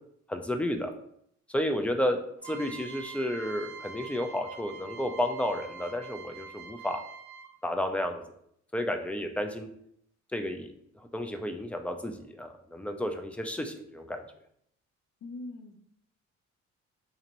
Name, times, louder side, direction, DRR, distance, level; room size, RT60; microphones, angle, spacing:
voice 1, 0.3-0.9 1.5-7.0 7.6-8.2 8.7-9.7 10.3-10.7 11.1-14.2, left 1 dB, 5° left, 6 dB, 0.4 m, -32 dB
sound 1, 2.4-7.7, right 5 dB, 70° right, 0.6 m, -45 dB
voice 2, 15.2-15.8, left 2 dB, 60° left, 6 dB, 0.6 m, -41 dB
4.0 x 2.8 x 2.6 m, 0.71 s
cardioid pair, 90°, 30 cm